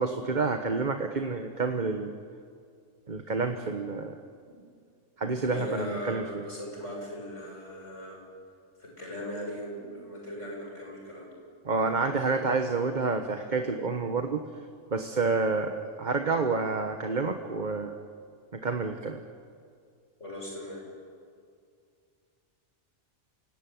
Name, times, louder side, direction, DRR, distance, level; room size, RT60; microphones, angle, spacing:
voice 1, 0.0-2.1 3.1-4.2 5.2-6.4 11.6-14.5 14.9-17.9 18.5-19.2, right 4 dB, 40° right, 5 dB, 1.3 m, -29 dB
voice 2, 5.4-8.2 8.8-11.3 20.2-20.8, equal, 85° left, -2 dB, 8.0 m, -39 dB
29.0 x 17.5 x 9.5 m, 2.2 s
omnidirectional pair, 1.2 m